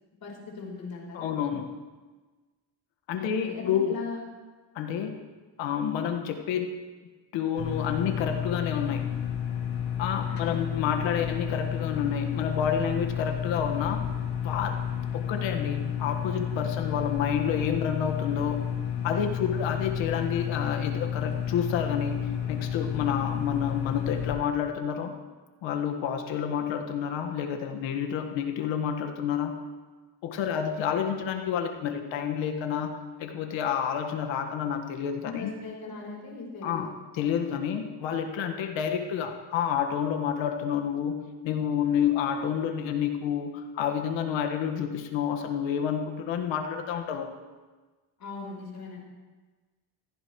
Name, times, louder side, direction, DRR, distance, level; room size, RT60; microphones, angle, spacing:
voice 1, 0.2-1.3 3.2-4.3 10.3-10.6 35.2-36.8 48.2-49.0, left 4 dB, 50° left, -1 dB, 4.4 m, -39 dB
voice 2, 1.1-1.8 3.1-3.9 4.7-5.1 5.6-6.8 7.3-9.1 10.0-14.0 14.4-14.8 15.1-18.6 19.0-25.1 25.6-29.5 30.2-32.9 33.2-35.5 36.6-36.9 37.2-41.2 41.4-47.3, left 8 dB, 85° left, 5 dB, 1.7 m, -29 dB
sound 1, 7.6-24.4, left 9 dB, 65° left, 2.8 m, -31 dB
16.5 x 15.0 x 3.2 m, 1.3 s
cardioid pair, 110°, 45 cm